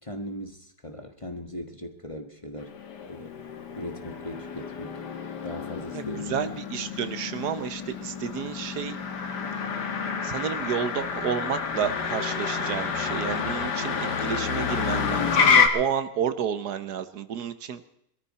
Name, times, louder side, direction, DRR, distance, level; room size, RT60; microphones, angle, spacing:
voice 1, 0.0-2.8 3.1-3.5 3.7-5.0 5.4-6.6, equal, 20° left, 6 dB, 1.4 m, -39 dB
Motor vehicle (road), 2.6-15.7, left 6 dB, 80° left, 2.1 m, -28 dB
voice 2, 6.3-9.0 10.2-17.8, right 8 dB, 75° right, 12 dB, 1.5 m, -31 dB
22.5 x 13.5 x 4.2 m, 0.76 s
omnidirectional pair, 1.8 m